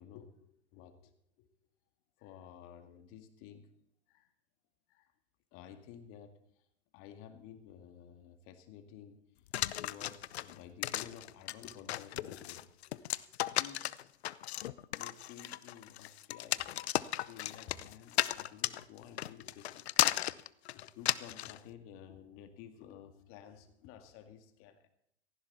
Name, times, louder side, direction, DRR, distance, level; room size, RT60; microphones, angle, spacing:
voice 1, 0.0-1.5 2.2-3.7 4.1-4.3 4.9-5.1 5.5-6.6 6.9-9.5 9.8-14.1 14.9-20.4 20.7-24.9, left 9 dB, 40° left, 7 dB, 2.2 m, -53 dB
sound 1, 9.5-21.6, left 13 dB, 70° left, 0.7 m, -35 dB
17.0 x 15.0 x 4.2 m, 0.75 s
hypercardioid pair, 115°, 34 cm